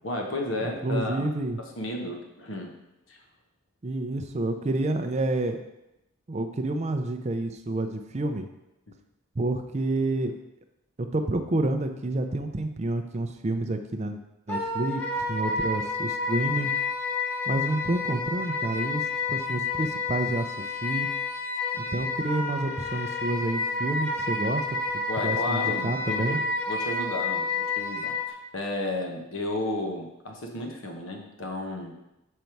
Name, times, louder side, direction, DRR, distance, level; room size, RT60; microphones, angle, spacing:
voice 1, 0.0-1.3 1.6-2.8 3.1-3.2 25.1-26.4 26.7-31.9, left 1 dB, 70° left, 2 dB, 1.2 m, -33 dB
voice 2, 0.6-1.6 3.8-5.6 6.3-8.5 9.4-10.3 11.0-14.2 14.5-16.7 17.5-21.1 21.9-24.6 25.2-26.4, right 2 dB, 30° right, 6 dB, 0.5 m, -29 dB
Wind instrument woodwind instrument, 14.5-28.3, left 4 dB, 10° left, 0.9 m, -30 dB
6.7 x 5.3 x 4.5 m, 0.92 s
head